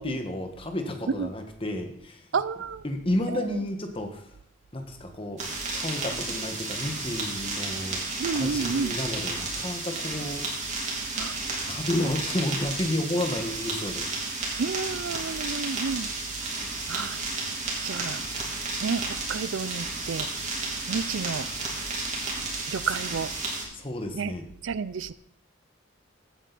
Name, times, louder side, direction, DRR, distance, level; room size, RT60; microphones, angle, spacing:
voice 1, 0.0-2.3 2.8-4.3 4.7-5.5 5.7-8.0 8.3-10.4 11.7-14.1 23.7-24.4, left 1 dB, 25° left, 1.4 m, -31 dB
voice 2, 2.3-2.8 3.3-3.6 8.2-9.0 11.1-11.4 14.6-16.1 16.9-17.2 17.8-18.2 18.8-20.3 20.9-21.5 22.7-23.3 24.1-24.4 24.6-25.1, right 5 dB, 70° right, 0.5 m, -31 dB
sound 1, 5.4-23.6, right 3 dB, 35° right, 3.1 m, -32 dB
15.5 x 8.9 x 4.1 m
head